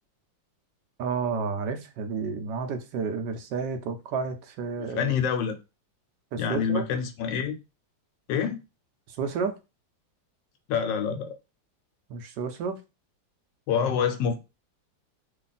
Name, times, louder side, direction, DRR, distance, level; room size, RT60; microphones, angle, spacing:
voice 1, 1.0-5.1 6.3-6.8 9.1-9.5 12.1-12.8, right 5 dB, 75° right, 1.1 m, -31 dB
voice 2, 4.8-5.6 6.4-7.6 8.3-8.6 10.7-11.3 13.7-14.4, left 7 dB, 75° left, 1.3 m, -26 dB
3.2 x 2.3 x 3.9 m
omnidirectional pair, 2.0 m